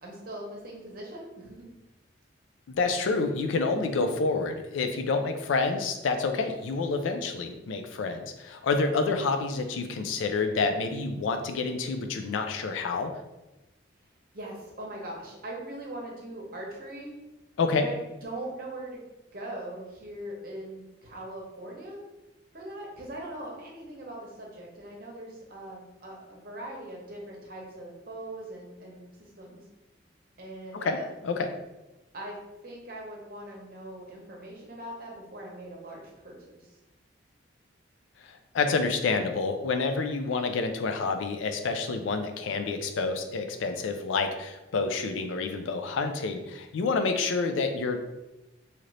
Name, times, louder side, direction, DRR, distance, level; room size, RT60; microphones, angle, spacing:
voice 1, 0.0-1.7 14.3-17.1 17.7-19.1 19.3-22.0 22.5-29.6 30.4-31.1 32.1-32.4 32.6-36.7, right 1 dB, 50° right, -1 dB, 0.8 m, -41 dB
voice 2, 2.7-13.1 17.6-17.9 30.7-31.5 38.2-48.0, left 4 dB, 85° left, 6 dB, 0.4 m, -28 dB
2.8 x 2.5 x 3.2 m, 1.0 s
head